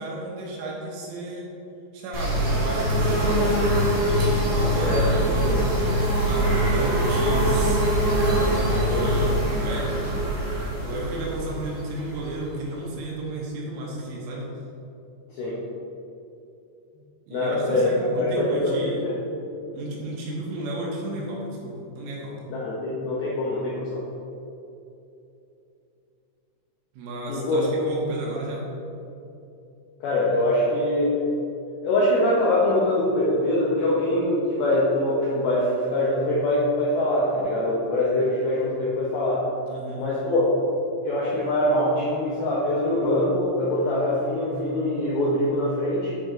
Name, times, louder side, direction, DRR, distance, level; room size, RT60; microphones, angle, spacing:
voice 1, 0.0-1.5 1.9-5.7 6.2-7.9 8.1-10.3 10.8-14.5 17.3-19.1 19.7-22.4 26.9-28.7 39.7-40.1, right 1 dB, 80° right, -3 dB, 3.7 m, -33 dB
sound 1, 2.1-12.8, right 1 dB, 55° right, 2.4 m, -23 dB
voice 2, 17.3-19.3 22.5-24.0 27.3-27.6 30.0-31.2 31.8-39.4 40.0-40.5 41.0-46.2, left 1 dB, 80° left, -7 dB, 2.2 m, -23 dB
9.2 x 5.2 x 3.2 m, 2.8 s
omnidirectional pair, 5.7 m